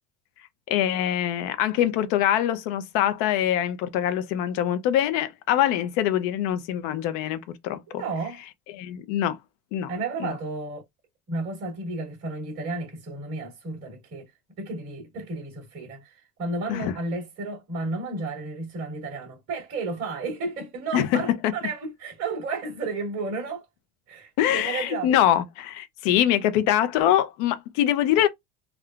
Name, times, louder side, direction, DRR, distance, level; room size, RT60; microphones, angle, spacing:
voice 1, 0.7-8.0 8.7-9.4 9.7-9.9 10.2-10.3 16.7-16.9 20.9-21.3 24.4-28.3, left 11 dB, 60° left, 0.6 m, -24 dB
voice 2, 7.9-8.4 9.9-10.8 11.3-14.3 14.6-23.6 24.1-25.1, right 3 dB, 30° right, 1.6 m, -32 dB
3.6 x 2.2 x 2.3 m
cardioid pair, 170°, 42 cm